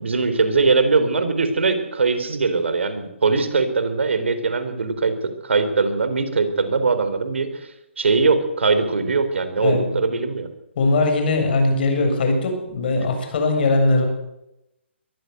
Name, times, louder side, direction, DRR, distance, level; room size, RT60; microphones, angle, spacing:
voice 1, 0.0-5.2 5.4-7.7 8.0-10.5, right 4 dB, 70° right, 10 dB, 3.9 m, -21 dB
voice 2, 9.6-10.0 10.8-14.0, left 2 dB, 50° left, 5 dB, 7.2 m, -20 dB
22.5 x 14.5 x 8.0 m, 0.87 s
figure-of-eight pair, 140°, 7 cm